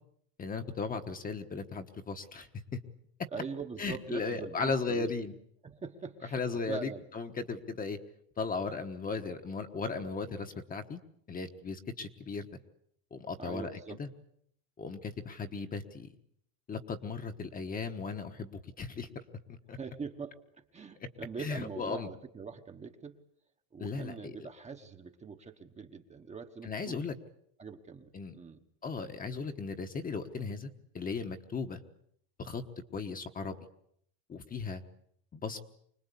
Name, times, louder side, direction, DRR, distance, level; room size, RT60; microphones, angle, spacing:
voice 1, 0.4-2.8 3.8-5.3 6.3-8.0 8.4-11.0 11.3-12.5 13.1-14.1 14.8-16.1 16.7-19.1 19.5-19.8 21.4-22.1 23.8-24.3 26.6-27.1 28.1-28.3 28.8-31.8 32.4-32.6 32.9-33.6 34.3-34.8 35.3-35.6, left 4 dB, 20° left, 7 dB, 1.2 m, -36 dB
voice 2, 3.3-5.1 5.6-7.0 13.4-14.0 19.8-20.4 20.7-23.2 23.7-27.0 27.6-28.6, right 5 dB, 15° right, 5 dB, 1.1 m, -43 dB
25.5 x 20.0 x 8.4 m, 0.70 s
cardioid pair, 160°, 44 cm